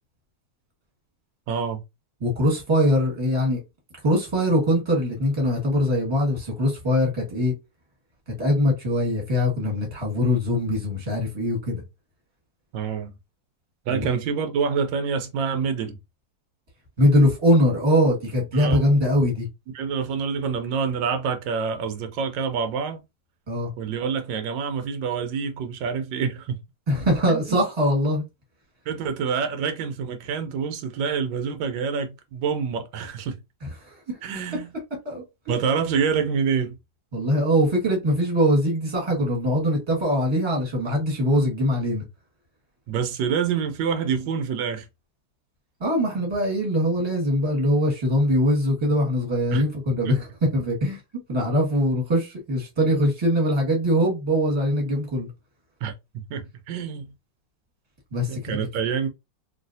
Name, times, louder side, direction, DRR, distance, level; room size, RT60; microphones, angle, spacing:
voice 1, 1.5-1.8 12.7-13.1 13.9-16.0 18.5-18.9 19.7-23.0 23.8-26.6 27.3-27.6 28.9-33.4 34.2-34.7 35.5-36.8 42.9-44.9 49.5-49.6 50.0-50.2 55.8-55.9 56.3-57.1 58.3-59.1, right 6 dB, 90° right, 1.3 m, -27 dB
voice 2, 2.2-3.6 4.0-7.5 8.4-11.8 13.9-14.0 17.0-19.5 23.5-23.7 26.9-28.2 33.6-34.2 34.5-34.6 35.0-35.2 37.1-42.0 45.8-50.3 50.5-51.0 51.3-55.3 58.1-58.4, equal, 15° right, 1.3 m, -22 dB
3.1 x 2.7 x 2.6 m
omnidirectional pair, 2.0 m